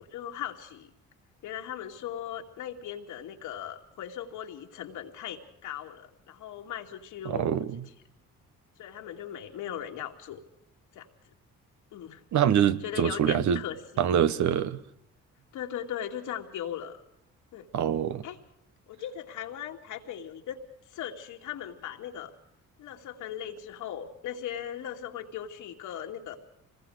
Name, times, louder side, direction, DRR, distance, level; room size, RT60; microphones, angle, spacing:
voice 1, 0.1-0.9 1.4-7.7 8.8-10.4 10.9-11.1 11.9-12.2 12.8-14.1 15.5-17.0 17.5-17.7 18.2-18.4 18.9-20.6 20.9-22.3 22.8-26.4, left 10 dB, 85° left, 2.6 m, -38 dB
voice 2, 7.2-7.8 12.3-13.6 14.0-14.8 17.7-18.2, right 9 dB, 70° right, 1.2 m, -25 dB
26.5 x 21.0 x 5.0 m
cardioid pair, 90°, 30 cm